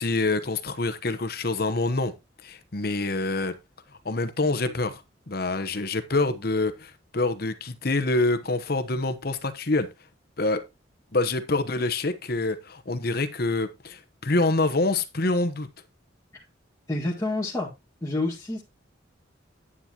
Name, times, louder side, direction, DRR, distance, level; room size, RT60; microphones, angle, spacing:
voice 1, 0.0-2.1 2.4-3.5 4.0-5.0 5.3-9.9 10.4-10.6 11.1-15.7, left 2 dB, 50° left, 1.0 m, -26 dB
voice 2, 16.9-17.7 18.0-18.6, left 2 dB, 15° left, 1.8 m, -28 dB
9.8 x 9.7 x 2.9 m
head